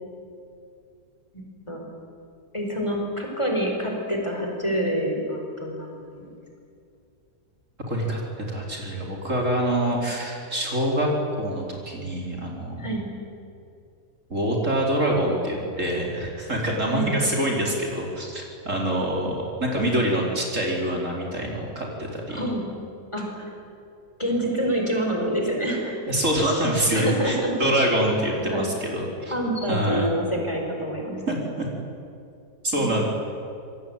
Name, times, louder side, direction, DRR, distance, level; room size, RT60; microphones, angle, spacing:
voice 1, 1.3-1.8 2.5-6.3 12.8-13.0 16.9-17.1 22.3-22.6 23.1-23.5 24.2-26.0 26.9-27.9 28.5-28.7 29.3-31.2 32.7-33.0, equal, 15° left, 1 dB, 4.8 m, -27 dB
voice 2, 7.9-11.1 11.4-12.9 14.3-22.5 26.1-29.3 29.7-30.1 31.3-31.7 32.6-33.0, right 1 dB, 50° right, -1 dB, 4.8 m, -25 dB
27.0 x 22.0 x 9.1 m, 2.5 s
omnidirectional pair, 1.7 m